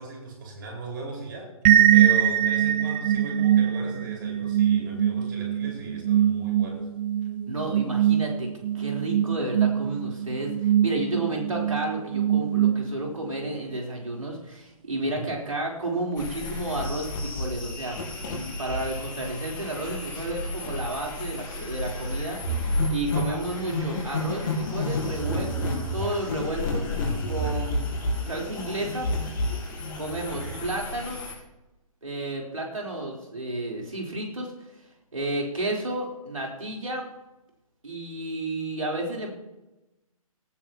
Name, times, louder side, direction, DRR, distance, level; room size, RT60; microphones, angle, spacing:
voice 1, 0.0-1.5 1.9-6.8 15.0-15.3 23.1-23.4 30.3-30.6, right 2 dB, 35° right, 0 dB, 5.1 m, -38 dB
sound 1, 1.6-13.3, right 10 dB, 15° right, 0.4 m, -23 dB
voice 2, 7.5-8.5 8.7-18.0 18.2-26.9 27.3-29.1 30.0-31.2 32.0-34.5 35.1-37.1 37.8-39.3, right 1 dB, 70° right, -1 dB, 3.8 m, -32 dB
sound 2, 16.2-31.3, left 1 dB, 35° left, 5.1 m, -31 dB
18.0 x 13.5 x 3.0 m, 0.98 s
figure-of-eight pair, 135°, 18 cm